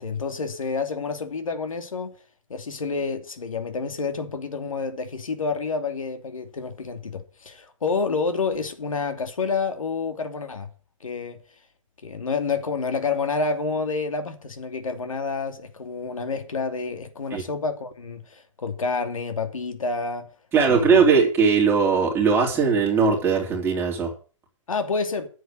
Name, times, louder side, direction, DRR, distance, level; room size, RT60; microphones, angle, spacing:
voice 1, 0.0-2.2 2.5-10.7 11.0-11.4 12.0-20.3 20.6-21.1 24.7-25.3, left 4 dB, 85° left, 2.7 m, -28 dB
voice 2, 20.5-24.1, right 5 dB, 15° right, 3.5 m, -19 dB
10.5 x 7.9 x 7.8 m
hypercardioid pair, 145°, 17 cm